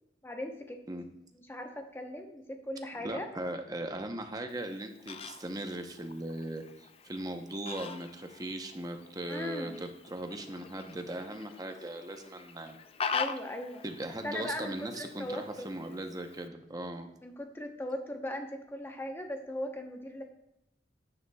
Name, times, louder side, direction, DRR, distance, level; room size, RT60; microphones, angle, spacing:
voice 1, 0.2-0.8 1.3-3.3 9.3-9.8 13.1-13.8 14.2-15.7 17.2-20.2, left 1 dB, 15° left, 4 dB, 0.9 m, -38 dB
voice 2, 3.0-12.8 13.8-17.1, right 1 dB, 20° right, 5 dB, 0.8 m, -39 dB
Fowl, 4.5-16.5, left 6 dB, 35° left, 0.3 m, -43 dB
9.5 x 9.4 x 2.3 m, 0.83 s
head